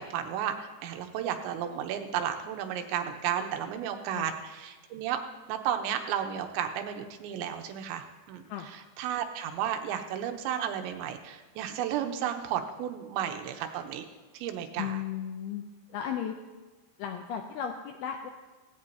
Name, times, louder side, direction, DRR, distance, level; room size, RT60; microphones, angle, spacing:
voice 1, 0.0-5.2 5.5-14.1 14.3-15.0, right 9 dB, 90° right, 6 dB, 3.2 m, -33 dB
voice 2, 14.8-15.6 15.9-16.3 17.0-18.3, left 9 dB, 85° left, 4 dB, 2.2 m, -35 dB
17.5 x 17.0 x 2.8 m, 1.2 s
omnidirectional pair, 5.2 m